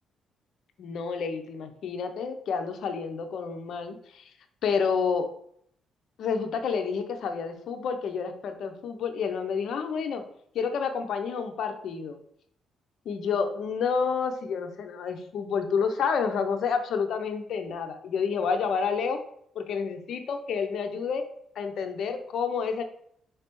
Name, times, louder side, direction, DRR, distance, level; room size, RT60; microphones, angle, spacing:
voice 1, 0.8-4.2 4.6-5.3 6.2-10.2 10.5-12.2 13.1-19.2 19.5-21.3 21.6-22.8, left 6 dB, 70° left, 6 dB, 0.6 m, -29 dB
5.0 x 3.2 x 3.0 m, 0.67 s
cardioid pair, 90°, 0 cm